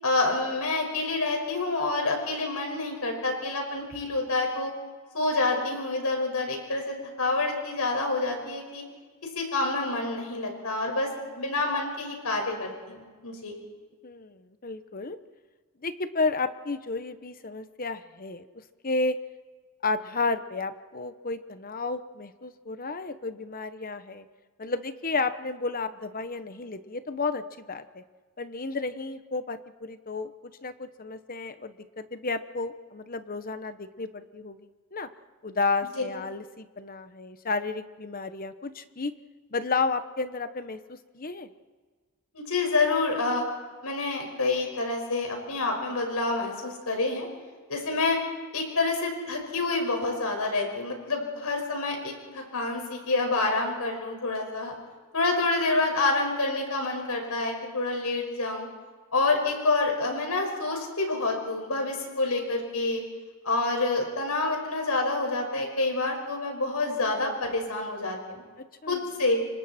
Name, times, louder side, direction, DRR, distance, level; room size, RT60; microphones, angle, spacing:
voice 1, 0.0-4.7 5.1-8.8 9.3-13.6 36.0-36.1 42.3-43.4 43.8-47.3 47.7-48.2 48.5-54.8 55.1-58.7 59.1-63.0 63.4-68.4 68.9-69.4, left 3 dB, 85° left, 2 dB, 5.6 m, -28 dB
voice 2, 14.0-15.2 15.8-18.5 18.8-19.1 19.8-24.3 24.6-28.0 28.4-30.3 30.6-35.1 35.4-39.1 39.5-41.5 68.8-69.0, left 3 dB, 40° left, 10 dB, 1.1 m, -32 dB
29.5 x 25.5 x 4.4 m, 1.4 s
head